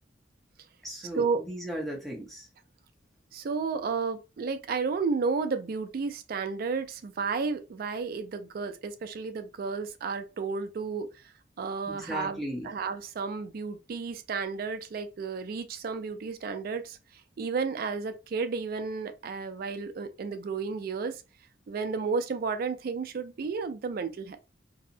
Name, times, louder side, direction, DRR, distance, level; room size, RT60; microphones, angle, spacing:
voice 1, 0.8-2.5 11.9-12.7, equal, ahead, 0.7 m, -36 dB
voice 2, 3.3-11.1 11.6-12.4 12.6-17.0 17.4-21.2 21.7-24.4, right 5 dB, 50° right, 0.3 m, -32 dB
2.7 x 2.1 x 2.5 m
head